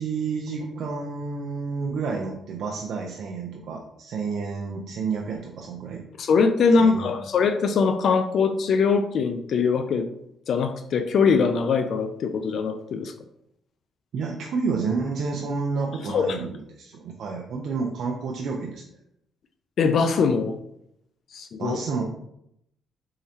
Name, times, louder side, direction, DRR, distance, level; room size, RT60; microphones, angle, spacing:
voice 1, 0.0-6.1 6.8-7.1 14.1-18.8 21.6-22.0, right 4 dB, 70° right, 0 dB, 0.6 m, -30 dB
voice 2, 6.2-10.1 10.5-13.1 16.1-16.4 19.8-20.6 21.3-21.8, left 5 dB, 60° left, 8 dB, 0.4 m, -22 dB
4.3 x 3.8 x 2.8 m, 0.76 s
cardioid pair, 90°, 0 cm